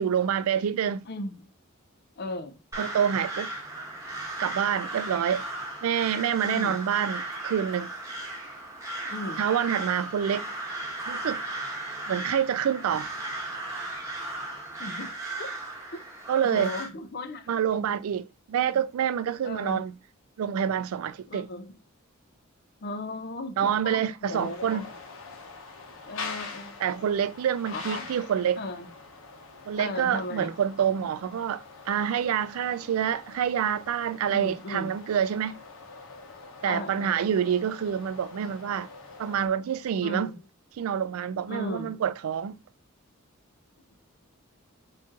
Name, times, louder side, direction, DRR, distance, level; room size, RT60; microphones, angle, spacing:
voice 1, 0.0-1.0 2.8-3.5 4.4-5.4 5.8-7.9 9.4-10.5 11.1-11.4 12.1-13.1 16.3-16.7 17.5-19.9 20.4-21.5 23.6-24.8 26.8-28.6 29.7-35.6 36.6-38.9 39.2-40.3 40.8-42.6, right 8 dB, 85° right, 0.3 m, -27 dB
voice 2, 1.0-1.5 2.2-2.6 6.4-6.8 9.0-9.4 14.8-15.1 15.4-15.5 15.9-16.0 16.4-17.9 19.4-19.9 21.3-21.7 22.8-24.8 26.1-27.1 27.7-28.1 28.6-28.9 29.8-30.6 34.3-35.0 36.6-37.3 40.0-40.4 41.5-42.0, left 2 dB, 50° left, 0.5 m, -36 dB
Crow, 2.7-16.9, right 2 dB, 15° right, 1.0 m, -36 dB
sound 1, 24.3-39.5, left 4 dB, 75° left, 0.9 m, -44 dB
3.9 x 2.5 x 3.7 m
head